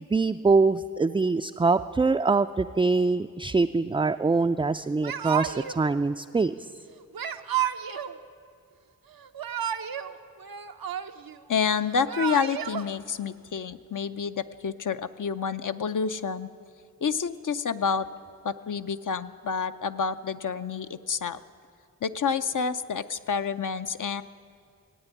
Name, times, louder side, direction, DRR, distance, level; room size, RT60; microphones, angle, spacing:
voice 1, 0.1-6.8, right 4 dB, 15° right, 6 dB, 0.3 m, -24 dB
Yell / Crying sobbing, 5.0-5.8 7.1-8.1 9.2-10.1 10.4-11.4 11.9-12.8, right 9 dB, 75° right, 0.6 m, -31 dB
voice 2, 11.5-16.5 17.0-18.1 18.4-21.4 22.0-24.2, left 6 dB, 60° left, 11 dB, 0.6 m, -28 dB
16.5 x 9.0 x 9.1 m, 2.4 s
cardioid pair, 40°, 35 cm